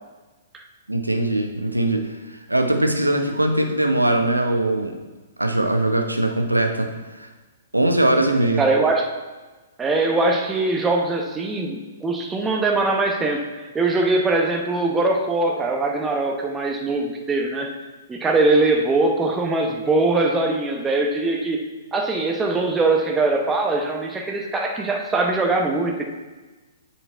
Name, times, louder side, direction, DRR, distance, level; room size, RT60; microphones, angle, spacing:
voice 1, 0.9-2.1 2.5-5.0 5.4-6.9 7.2-7.3 7.7-8.7, right 1 dB, 90° right, 4 dB, 0.9 m, -21 dB
voice 2, 8.6-9.1 9.8-17.8 18.1-21.6 21.9-26.0, right 2 dB, 15° right, 2 dB, 0.9 m, -21 dB
8.8 x 4.6 x 4.4 m, 1.2 s
figure-of-eight pair, 115°, 0 cm